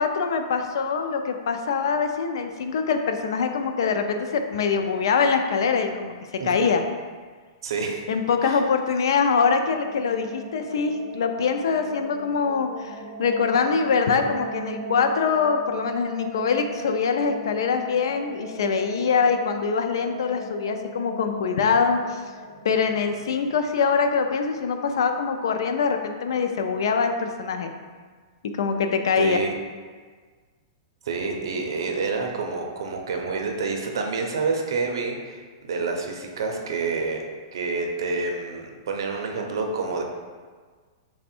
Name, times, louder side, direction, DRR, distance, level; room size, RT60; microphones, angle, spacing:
voice 1, 0.0-6.1 6.4-6.8 8.1-22.2 22.6-27.7 28.5-29.4, left 5 dB, 75° left, 6 dB, 0.3 m, -24 dB
voice 2, 7.6-8.0 8.4-8.6 29.2-29.5 31.0-37.2 37.5-40.0, right 4 dB, 80° right, 2 dB, 0.5 m, -28 dB
sound 1, 9.6-24.3, right 2 dB, 40° right, 0.7 m, -38 dB
3.4 x 2.1 x 4.3 m, 1.5 s
supercardioid pair, 165°, 2 cm